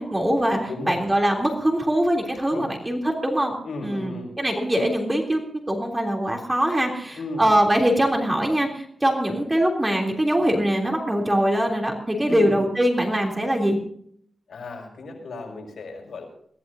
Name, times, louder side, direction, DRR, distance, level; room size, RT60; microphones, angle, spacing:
voice 1, 0.0-0.6 0.9-3.6 3.8-5.4 5.7-13.8, equal, 15° right, 0 dB, 3.3 m, -22 dB
voice 2, 0.6-1.0 2.5-2.8 3.6-4.3 7.2-7.5 12.2-12.6 14.5-16.3, left 2 dB, 80° left, 0 dB, 6.1 m, -34 dB
22.5 x 15.5 x 2.8 m, 0.63 s
wide cardioid pair, 120°, 0 cm